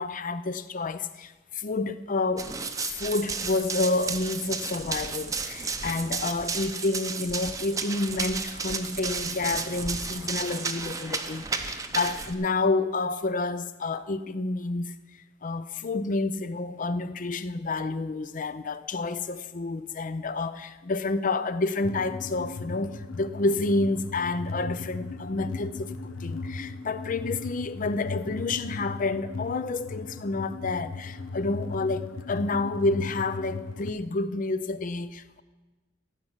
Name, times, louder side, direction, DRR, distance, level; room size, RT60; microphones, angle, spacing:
voice 1, 0.0-2.6 2.8-14.9 15.4-35.4, left 3 dB, 40° left, 0.5 m, -29 dB
Run, 2.4-12.3, right 4 dB, 15° right, 0.6 m, -33 dB
sound 1, 21.8-33.9, left 3 dB, 90° left, 0.7 m, -37 dB
14.5 x 6.0 x 7.9 m
head